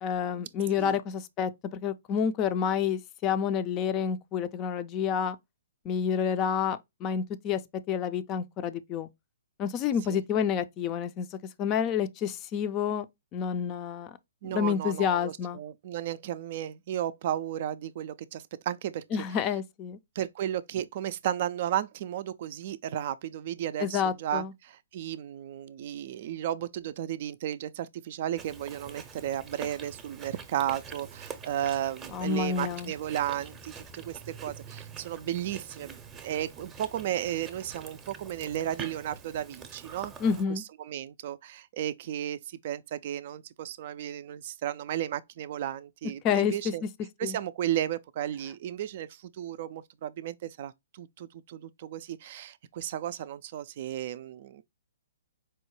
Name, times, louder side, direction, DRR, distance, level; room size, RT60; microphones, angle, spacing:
voice 1, 0.0-5.4 5.8-7.6 7.9-9.1 9.6-13.1 13.3-14.1 14.4-15.6 19.1-20.0 23.8-24.5 32.1-32.9 40.2-40.6 46.2-46.7 47.2-47.4, left 7 dB, 30° left, 0.4 m, -29 dB
voice 2, 14.4-19.0 20.2-40.1 40.5-46.8 47.2-54.6, right 11 dB, 50° right, 0.3 m, -34 dB
Chewing mastication, 28.4-40.4, right 6 dB, 15° right, 0.6 m, -45 dB
4.6 x 2.1 x 3.0 m
hypercardioid pair, 130°, 0 cm